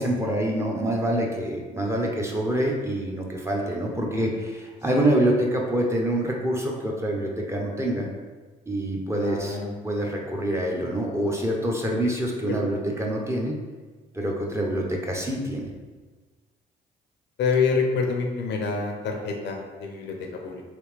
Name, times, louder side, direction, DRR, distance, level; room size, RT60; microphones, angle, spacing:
voice 1, 0.0-8.1 8.7-9.6 9.8-13.5 14.1-15.7, right 1 dB, 15° right, -1 dB, 0.8 m, -26 dB
voice 2, 9.1-9.7 12.5-12.6 17.4-20.6, left 5 dB, 70° left, 2 dB, 0.6 m, -27 dB
3.3 x 2.8 x 3.2 m, 1.3 s
supercardioid pair, 60°, 19 cm